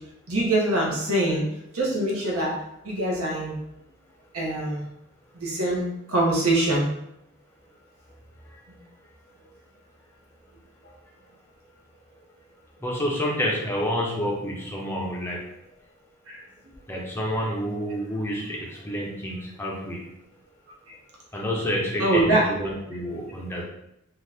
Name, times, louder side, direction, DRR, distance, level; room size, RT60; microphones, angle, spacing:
voice 1, 0.3-1.5 1.7-3.5 4.3-4.9 5.3-6.9 16.3-16.4 22.0-22.5, right 1 dB, 70° right, -3 dB, 0.9 m, -24 dB
voice 2, 12.8-15.4 16.9-20.0 21.3-23.6, equal, 10° left, -3 dB, 0.5 m, -28 dB
2.8 x 2.4 x 3.3 m, 0.81 s
head